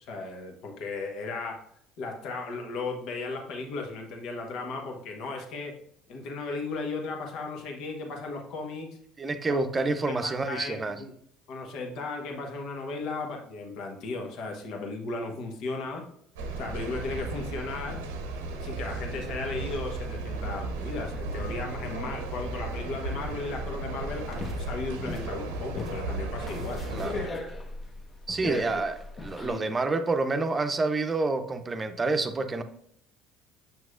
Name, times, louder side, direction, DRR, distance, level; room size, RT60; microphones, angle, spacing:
voice 1, 0.1-1.6 2.0-5.7 6.1-8.9 9.5-9.6 10.1-10.2 10.5-11.1 11.5-16.0 16.6-18.0 18.6-27.3 28.4-28.8 29.4-29.7, left 3 dB, 65° left, 2 dB, 1.1 m, -36 dB
voice 2, 9.2-11.0 26.9-27.2 28.3-28.9 29.2-32.6, right 3 dB, 30° right, 8 dB, 0.7 m, -28 dB
sound 1, 16.4-27.3, right 2 dB, 85° right, 0.8 m, -35 dB
sound 2, 24.2-29.5, left 2 dB, 35° left, 1.0 m, -38 dB
7.0 x 6.0 x 2.5 m, 0.70 s
hypercardioid pair, 65°, 0 cm